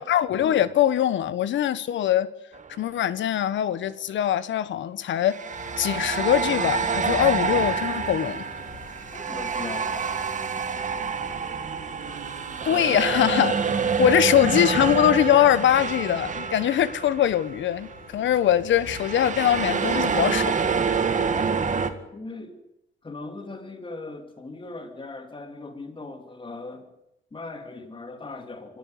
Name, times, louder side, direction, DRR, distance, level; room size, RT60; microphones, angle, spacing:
voice 1, 0.0-2.3 2.8-5.4 5.8-8.4 12.6-13.6 14.0-20.8, left 11 dB, 70° left, 1.3 m, -22 dB
sound 1, 2.5-2.8 5.2-17.6 17.8-18.1 18.8-21.9, right 5 dB, 40° right, 2.1 m, -27 dB
sound 2, 5.5-21.6, left 4 dB, 45° left, 7.9 m, -47 dB
voice 2, 9.1-10.4 22.1-22.6 23.0-26.9 27.3-28.8, left 3 dB, 25° left, 3.0 m, -39 dB
25.0 x 14.0 x 9.4 m
cardioid pair, 90°, 20 cm